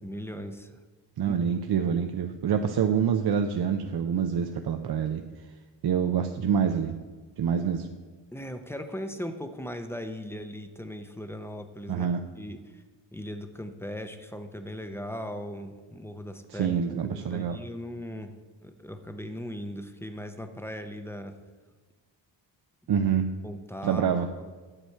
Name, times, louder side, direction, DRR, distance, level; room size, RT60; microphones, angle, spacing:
voice 1, 0.0-0.8 1.3-1.4 8.3-12.1 12.4-12.8 13.1-16.8 17.0-18.3 18.6-21.3 23.4-24.0 24.4-24.6, equal, 5° left, 7 dB, 0.5 m, -38 dB
voice 2, 1.2-5.2 5.8-7.0 7.4-7.9 11.9-12.2 16.5-17.6 22.9-23.3 23.8-24.3, right 7 dB, 55° right, 5 dB, 0.6 m, -26 dB
9.9 x 7.8 x 4.5 m, 1.4 s
wide cardioid pair, 160°, 47 cm